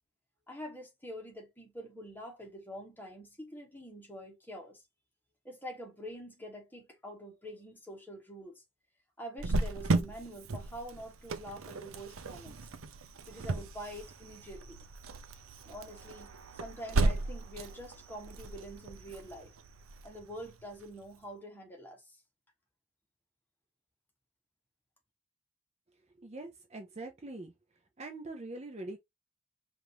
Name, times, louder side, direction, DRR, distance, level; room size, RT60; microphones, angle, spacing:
voice 1, 0.5-4.8 5.4-8.6 9.2-12.7 13.3-14.8 15.6-19.5 20.0-22.2, equal, 10° left, 1.2 m, -46 dB
Cricket, 9.4-20.8, right 2 dB, 80° right, 0.6 m, -35 dB
voice 2, 26.2-27.5 28.0-29.0, right 2 dB, 30° right, 0.6 m, -43 dB
5.1 x 2.6 x 2.9 m
head